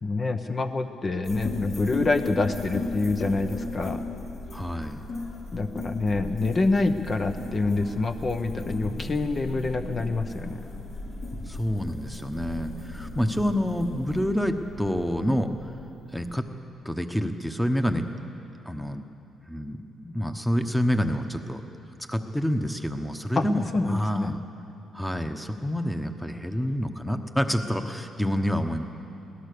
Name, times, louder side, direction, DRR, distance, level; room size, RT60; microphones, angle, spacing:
voice 1, 0.0-4.0 5.5-10.6 23.4-23.5 23.7-24.3, left 3 dB, 35° left, 7 dB, 1.0 m, -26 dB
sound 1, 1.2-16.4, left 2 dB, 60° left, 4.5 m, -36 dB
voice 2, 4.5-5.0 11.5-15.7 16.1-16.4 16.8-18.0 18.6-19.0 19.5-21.6 22.1-24.4 24.9-28.8, equal, ahead, 7 dB, 1.2 m, -28 dB
22.0 x 17.5 x 6.8 m, 2.8 s
cardioid pair, 90°, 0 cm